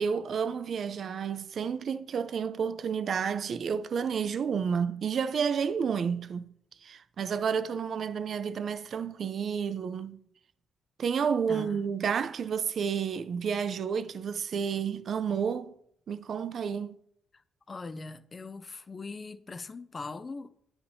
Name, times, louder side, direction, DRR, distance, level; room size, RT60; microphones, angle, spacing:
voice 1, 0.0-6.4 6.8-10.2 11.0-15.7 16.1-17.0, right 6 dB, 55° right, 0.4 m, -30 dB
voice 2, 11.5-11.9 17.7-20.5, left 3 dB, 30° left, 0.4 m, -41 dB
9.6 x 5.7 x 2.7 m
cardioid pair, 90°, 0 cm